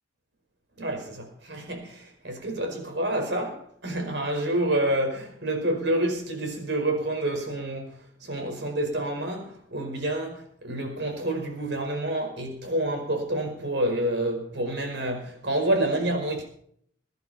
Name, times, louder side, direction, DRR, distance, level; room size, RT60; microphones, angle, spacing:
voice 1, 0.8-16.4, right 1 dB, 70° right, 5.0 m, -28 dB
22.0 x 10.5 x 4.4 m
head